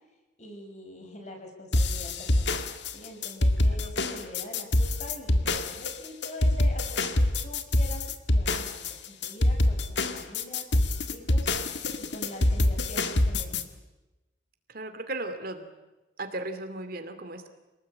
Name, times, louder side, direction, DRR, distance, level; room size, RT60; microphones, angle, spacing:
voice 1, 0.4-2.6 2.9-13.6, left 1 dB, 40° left, 4 dB, 6.2 m, -44 dB
sound 1, 1.7-13.6, left 1 dB, 65° left, 1.9 m, -25 dB
voice 2, 14.7-15.7 16.2-17.5, right 2 dB, 50° right, 8 dB, 2.7 m, -36 dB
28.0 x 19.5 x 8.8 m, 1.1 s
head